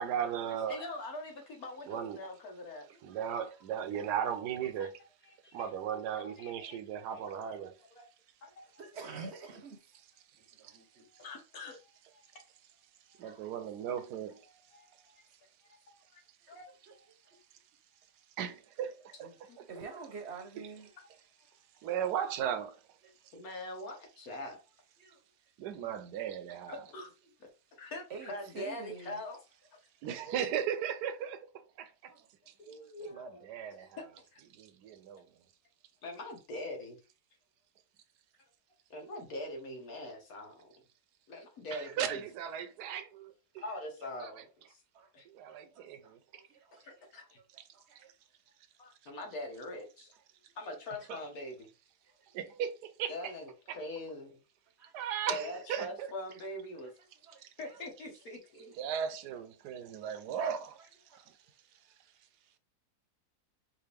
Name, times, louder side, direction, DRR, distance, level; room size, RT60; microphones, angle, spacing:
voice 1, 0.0-0.8 1.9-2.3 3.0-5.0 5.5-7.8 13.2-14.4 18.4-19.3 19.6-19.7 21.8-22.8 25.6-26.8 30.0-32.1 33.2-34.0 34.5-35.3 41.7-43.6 44.2-44.3 45.3-46.4 51.1-51.2 52.3-53.1 53.7-53.8 54.9-56.1 58.8-60.8 61.3-61.4, right 8 dB, 80° right, 1.2 m, -36 dB
voice 2, 0.7-2.9 4.8-4.9 5.2-5.7 6.1-6.8 7.1-7.6 7.9-8.1 8.4-8.5 10.7-10.8 11.1-12.3 13.1-13.2 14.5-15.2 15.9-16.2 16.5-17.0 19.2-19.6 23.3-24.6 25.8-25.9 26.7-27.1 27.4-27.5 27.8-29.4 30.0-30.2 32.6-33.5 33.8-34.0 34.3-34.4 36.0-37.0 38.9-40.7 41.3-42.2 43.6-44.8 45.1-45.3 46.8-47.4 48.8-50.1 50.5-51.7 53.1-54.4 55.3-56.9 57.6-58.7, left 1 dB, 65° left, 1.7 m, -43 dB
voice 3, 8.8-9.8 10.4-11.1 13.2-13.5 16.4-16.6 16.9-17.0 19.7-20.9 23.0-23.1 25.0-25.2 28.1-29.2 32.1-32.3 44.9-45.1 45.4-46.1 46.5-46.8 47.1-47.3 47.7-48.1 53.2-53.3 54.8-55.3 57.3-57.8 60.7-60.8 61.1-61.3, right 4 dB, 50° right, 0.9 m, -48 dB
4.8 x 2.6 x 3.4 m
omnidirectional pair, 1.7 m